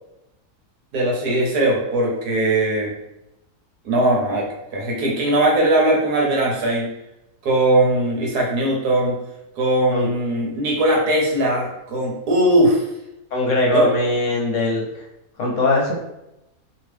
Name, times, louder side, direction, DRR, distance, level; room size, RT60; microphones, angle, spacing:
voice 1, 0.9-2.9 3.8-4.5 4.7-6.9 7.4-9.2 9.6-12.8 13.7-13.9, right 1 dB, 85° right, -2 dB, 1.4 m, -19 dB
voice 2, 13.3-14.8 15.4-16.0, left 2 dB, 65° left, -1 dB, 0.9 m, -20 dB
2.9 x 2.7 x 3.2 m, 0.89 s
omnidirectional pair, 1.6 m